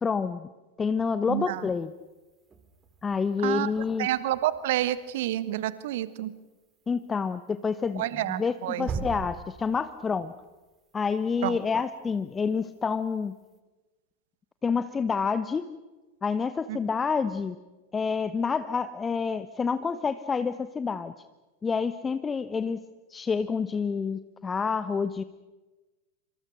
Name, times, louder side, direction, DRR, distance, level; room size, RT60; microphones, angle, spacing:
voice 1, 0.0-0.5 0.8-1.9 3.0-4.1 6.9-8.0 8.4-10.3 10.9-13.3 14.6-15.7 16.2-17.6 17.9-21.1 21.6-22.8 23.1-25.2, left 5 dB, 15° left, 13 dB, 0.9 m, -28 dB
voice 2, 1.3-1.7 3.4-3.7 4.0-6.3 7.9-8.9 11.4-11.6 16.7-16.8, right 14 dB, 55° right, 16 dB, 1.3 m, -29 dB
sound 1, 1.4-13.6, right 4 dB, 20° right, 2.9 m, -45 dB
27.0 x 26.0 x 6.4 m, 1.2 s
figure-of-eight pair, 90°, 0 cm